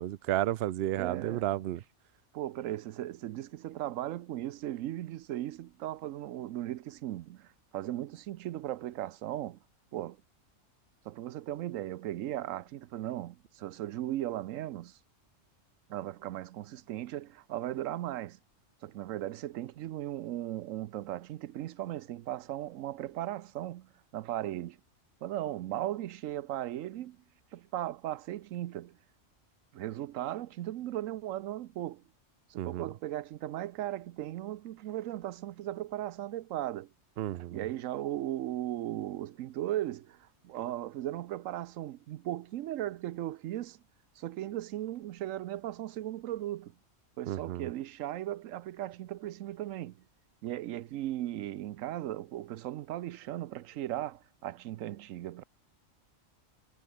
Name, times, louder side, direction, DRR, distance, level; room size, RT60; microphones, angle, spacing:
voice 1, 0.0-1.8 32.6-32.9 37.2-37.6 47.3-47.7, right 14 dB, 65° right, 0.7 m, -32 dB
voice 2, 1.0-1.5 2.3-9.6 9.9-10.2 11.0-15.0 15.9-18.4 18.8-24.8 25.2-27.2 27.5-29.0 29.7-32.0 32.5-36.9 37.5-43.8 44.2-46.7 47.2-50.0 50.4-55.4, right 13 dB, 85° right, 1.0 m, -37 dB
omnidirectional pair, 1.3 m